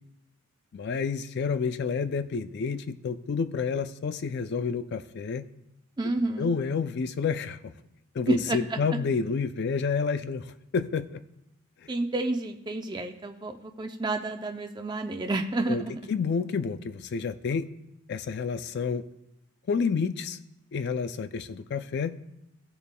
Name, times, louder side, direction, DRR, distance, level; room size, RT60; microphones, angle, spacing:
voice 1, 0.7-5.5 6.4-7.6 8.2-11.2 11.8-11.9 15.7-17.7 18.1-19.0 19.7-20.4 20.7-22.2, left 5 dB, 50° left, 11 dB, 0.3 m, -29 dB
voice 2, 6.0-6.5 8.3-9.0 11.9-16.0, right 2 dB, 20° right, 4 dB, 0.4 m, -30 dB
15.5 x 6.9 x 2.2 m, 0.86 s
head